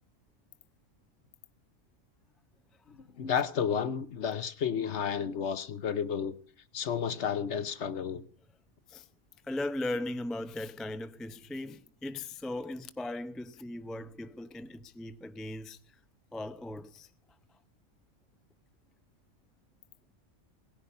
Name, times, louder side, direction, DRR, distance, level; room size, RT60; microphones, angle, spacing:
voice 1, 2.9-6.4 6.7-8.2, left 7 dB, 60° left, 1.1 m, -32 dB
voice 2, 9.5-15.8 16.3-17.1, left 1 dB, ahead, 0.3 m, -38 dB
18.0 x 10.5 x 5.5 m
omnidirectional pair, 1.4 m